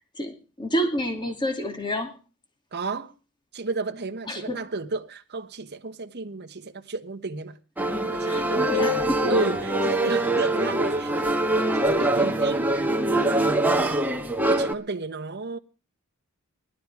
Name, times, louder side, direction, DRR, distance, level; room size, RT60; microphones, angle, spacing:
voice 1, 0.0-2.2 4.3-4.6 8.2-9.3, equal, 20° left, 2.5 m, -29 dB
voice 2, 2.7-3.1 3.5-7.6 8.0-11.1 11.6-12.7 13.1-13.7 14.5-15.6, right 3 dB, 50° right, 1.2 m, -32 dB
sound 1, 7.8-14.7, right 1 dB, 10° right, 1.4 m, -23 dB
19.0 x 12.5 x 4.8 m
head